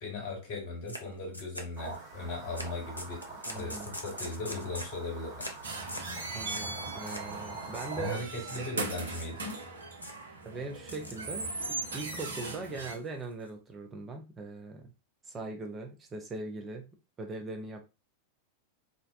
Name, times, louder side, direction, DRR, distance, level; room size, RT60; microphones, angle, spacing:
voice 1, 0.0-3.2 3.5-3.7 4.0-5.5 8.0-9.6, left 2 dB, 55° left, -1 dB, 1.2 m, -38 dB
sound 1, 0.9-1.0 1.3-2.0 2.6-2.7 3.0-5.0 5.4-5.6 5.9-6.1 6.5-6.7 7.1-7.3 7.6-7.9 8.5-8.7 9.1-9.6 10.0-10.2 10.8-11.2 11.5-12.2 12.6-13.5, equal, 85° left, 0.4 m, -43 dB
sound 2, 1.8-8.2, right 3 dB, 40° right, 1.3 m, -44 dB
voice 2, 3.5-3.9 6.3-8.2 10.4-14.9 15.3-16.9 17.2-17.8, right 3 dB, 20° right, 3 dB, 0.4 m, -40 dB
sound 3, 5.6-12.9, right 3 dB, 70° right, 0.6 m, -39 dB
2.5 x 2.0 x 2.4 m, 0.28 s
figure-of-eight pair, 90°, 0 cm